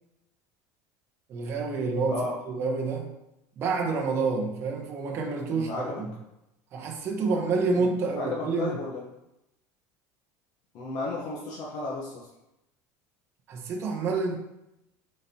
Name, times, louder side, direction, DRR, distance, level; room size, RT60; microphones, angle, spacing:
voice 1, 1.3-3.1 3.6-5.7 6.0-6.1 6.7-8.8 13.5-14.4, right 4 dB, 30° right, -1 dB, 1.0 m, -28 dB
voice 2, 5.5-6.0 7.7-9.0 10.7-12.3, left 2 dB, 45° left, -3 dB, 1.0 m, -34 dB
9.0 x 4.4 x 2.8 m, 0.89 s
cardioid pair, 160°, 9 cm